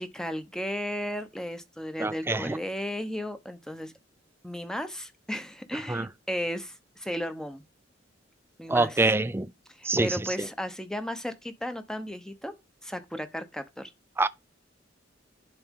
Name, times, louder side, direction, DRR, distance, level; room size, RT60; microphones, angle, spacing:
voice 1, 0.0-3.9 4.4-7.6 8.6-9.0 9.8-12.5 12.8-13.9, equal, 5° left, 0.8 m, -35 dB
voice 2, 2.0-2.6 5.9-6.1 8.7-9.5 9.8-10.5 14.2-14.3, right 2 dB, 10° right, 0.4 m, -25 dB
11.0 x 4.1 x 3.7 m
head